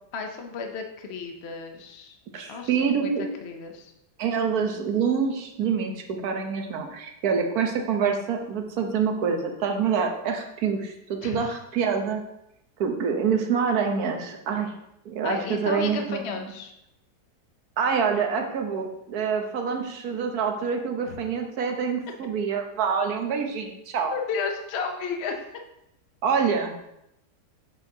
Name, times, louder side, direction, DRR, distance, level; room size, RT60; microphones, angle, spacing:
voice 1, 0.1-2.2 2.5-3.1 3.4-3.9 11.2-11.4 15.2-16.7 21.1-21.2 24.1-25.4, left 5 dB, 55° left, 4 dB, 0.8 m, -33 dB
voice 2, 2.3-3.2 4.2-12.2 12.8-14.7 15.0-16.5 17.8-24.1 26.2-26.8, right 6 dB, 65° right, 4 dB, 1.4 m, -26 dB
7.6 x 7.1 x 2.8 m, 0.83 s
omnidirectional pair, 1.8 m